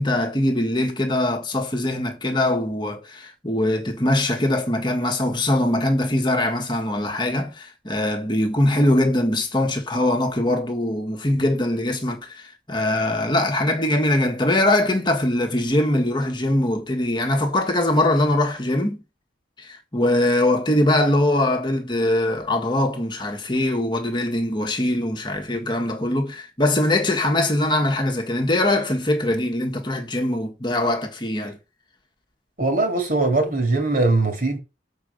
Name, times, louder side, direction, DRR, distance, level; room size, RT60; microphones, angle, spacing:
voice 1, 0.0-19.0 19.6-31.6, left 1 dB, 25° left, 1.4 m, -22 dB
voice 2, 32.6-34.6, right 2 dB, 50° right, 2.6 m, -21 dB
6.9 x 4.8 x 6.5 m
head